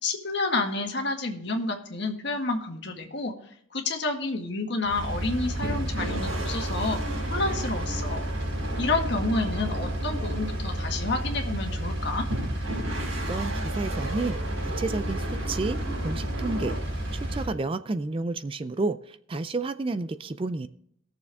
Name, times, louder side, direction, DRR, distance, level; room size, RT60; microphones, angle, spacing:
voice 1, 0.0-3.3 3.7-7.0 7.3-8.2 8.8-12.3, left 3 dB, 55° left, 3 dB, 1.8 m, -29 dB
Engine, 4.8-17.5, right 1 dB, 70° right, 4.3 m, -31 dB
sound 1, 5.6-11.5 12.3-16.8, right 1 dB, 85° right, 4.1 m, -36 dB
voice 2, 13.2-16.8 17.1-20.7, right 3 dB, 25° right, 12 dB, 0.3 m, -31 dB
19.5 x 7.0 x 3.5 m, 0.65 s
head